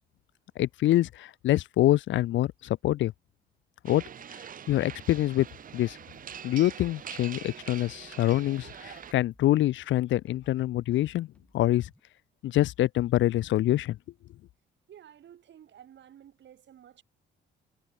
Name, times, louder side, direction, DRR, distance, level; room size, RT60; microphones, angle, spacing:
voice 1, 0.6-3.1 3.8-4.0 4.7-5.5 5.7-6.0 6.4-11.3 11.5-11.9 12.4-14.0, left 14 dB, 75° left, 0.6 m, -25 dB
sound 1, 3.9-9.1, right 8 dB, 45° right, 0.7 m, -44 dB
sound 2, 5.0-7.2 7.4-12.0, left 1 dB, 5° left, 5.6 m, -62 dB
voice 2, 14.9-17.0, right 10 dB, 65° right, 4.7 m, -52 dB
cardioid pair, 90°, 20 cm